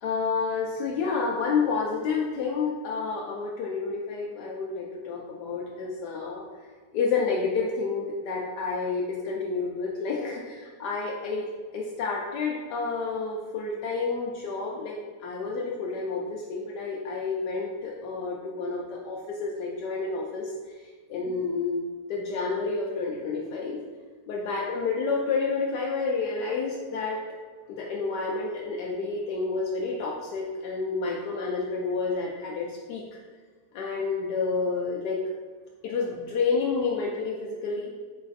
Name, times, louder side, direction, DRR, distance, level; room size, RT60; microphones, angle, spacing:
voice 1, 0.0-6.4 6.9-11.4 11.7-20.5 21.1-21.8 22.1-23.8 24.3-27.2 27.7-33.0 33.7-35.2 35.8-37.9, left 4 dB, 90° left, -3 dB, 1.2 m, -29 dB
3.9 x 3.2 x 4.0 m, 1.5 s
omnidirectional pair, 1.7 m